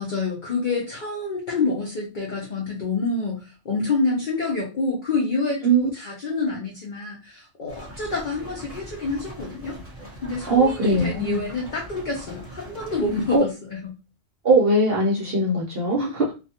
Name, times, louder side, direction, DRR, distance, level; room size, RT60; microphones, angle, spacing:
voice 1, 0.0-9.8 10.2-14.0, left 3 dB, 50° left, -2 dB, 0.6 m, -27 dB
voice 2, 6.3-6.6 10.5-11.4 13.3-13.4 14.4-16.3, right 2 dB, 55° right, -3 dB, 0.7 m, -20 dB
sound 1, 7.7-13.4, right 1 dB, 15° right, 0.7 m, -41 dB
2.5 x 2.3 x 2.7 m, 0.30 s
omnidirectional pair, 1.4 m